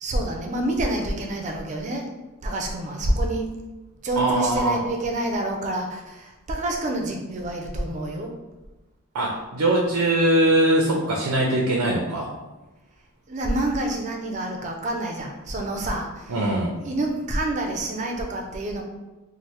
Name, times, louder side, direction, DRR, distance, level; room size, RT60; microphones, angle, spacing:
voice 1, 0.0-2.0 2.4-3.5 4.0-8.3 13.3-16.3 16.8-18.8, right 1 dB, 35° right, 2 dB, 0.4 m, -27 dB
voice 2, 4.2-4.8 9.1-12.3 16.3-16.7, right 1 dB, 90° right, -1 dB, 0.5 m, -21 dB
3.1 x 2.0 x 2.9 m, 1.1 s
head